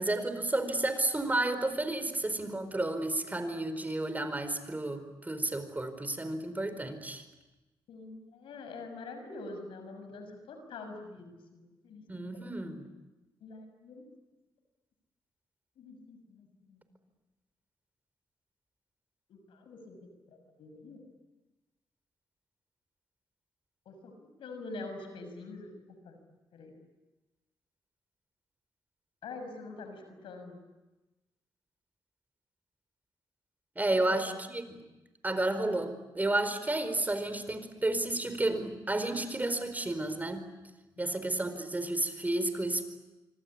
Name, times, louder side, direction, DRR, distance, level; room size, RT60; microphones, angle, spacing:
voice 1, 0.0-7.2 12.1-12.9 33.8-34.8 35.2-40.5 41.0-42.9, right 2 dB, 20° right, 10 dB, 4.5 m, -31 dB
voice 2, 7.9-12.5 13.4-14.0 15.8-16.8 19.3-20.0 20.3-21.0 23.9-24.1 24.4-25.7 26.0-26.2 26.5-26.7 29.2-30.6 33.9-34.2 41.0-41.2, left 3 dB, 90° left, 7 dB, 6.2 m, -45 dB
26.0 x 25.5 x 8.6 m, 1.1 s
cardioid pair, 70°, 9 cm